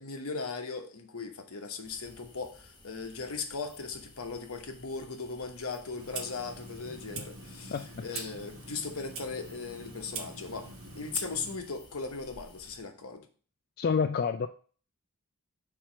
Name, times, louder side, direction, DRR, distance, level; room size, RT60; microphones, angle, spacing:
voice 1, 0.0-10.7 11.0-13.2, left 4 dB, 70° left, 5 dB, 1.1 m, -38 dB
sound 1, 1.8-12.8, left 2 dB, 20° left, 1.1 m, -56 dB
Clock, 6.0-11.6, right 4 dB, 65° right, 1.1 m, -44 dB
voice 2, 7.7-8.3 13.8-14.5, left 6 dB, 45° left, 6 dB, 0.3 m, -30 dB
4.7 x 4.3 x 5.9 m, 0.41 s
head